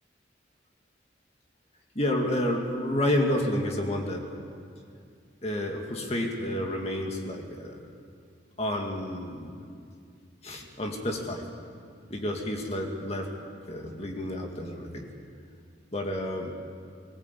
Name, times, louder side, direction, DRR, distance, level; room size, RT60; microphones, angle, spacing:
voice 1, 2.0-4.3 5.4-7.9 8.6-9.6 10.4-11.5 12.1-13.3 13.7-15.1 15.9-16.5, left 1 dB, 35° left, 1 dB, 2.2 m, -30 dB
19.5 x 19.0 x 8.4 m, 2.3 s
head